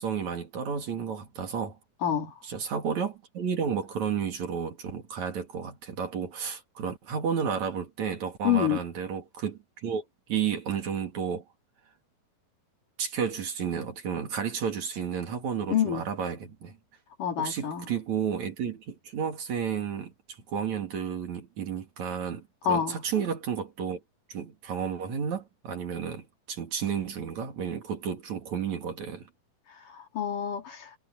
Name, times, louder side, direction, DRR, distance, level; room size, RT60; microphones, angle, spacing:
voice 1, 0.0-1.8 2.4-10.0 10.3-11.4 13.0-16.8 17.4-20.1 20.5-24.0 24.3-29.3, right 7 dB, 55° right, 3.4 m, -32 dB
voice 2, 2.0-2.3 8.4-8.8 15.7-16.1 17.2-17.9 22.7-23.0 29.9-30.9, left 9 dB, 65° left, 5.2 m, -27 dB
omnidirectional pair, 4.1 m